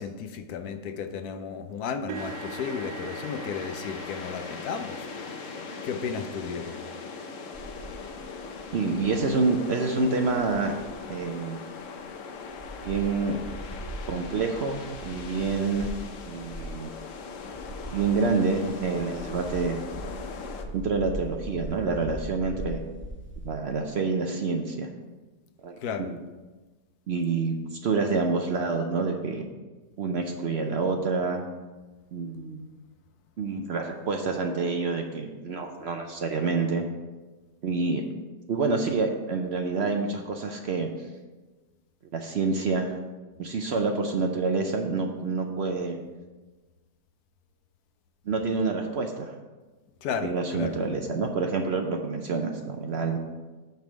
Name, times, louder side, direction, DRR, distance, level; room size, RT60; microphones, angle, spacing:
voice 1, 0.0-5.1 5.8-6.8 25.8-26.1 50.0-50.8, left 6 dB, 80° left, 8 dB, 1.2 m, -34 dB
sound 1, 2.1-20.6, left 5 dB, 60° left, 1.0 m, -40 dB
sound 2, 2.1-10.1 10.7-11.0 11.4-11.5 12.9-13.0, right 10 dB, 90° right, 1.1 m, -46 dB
sound 3, 7.5-11.2 11.7-11.8 12.0-12.1 12.4-23.5, right 1 dB, 10° left, 0.6 m, -41 dB
voice 2, 8.7-10.7 11.1-11.6 12.8-13.4 14.1-15.9 16.3-16.9 17.9-19.8 20.7-22.8 23.4-24.9 25.6-26.2 27.1-29.5 30.0-31.4 32.1-32.7 33.4-36.8 37.6-38.0 38.5-41.1 42.1-43.0 43.4-46.0 48.3-49.3 50.2-53.2, right 4 dB, 60° right, 4 dB, 0.7 m, -27 dB
9.1 x 3.5 x 6.2 m, 1.2 s
omnidirectional pair, 1.6 m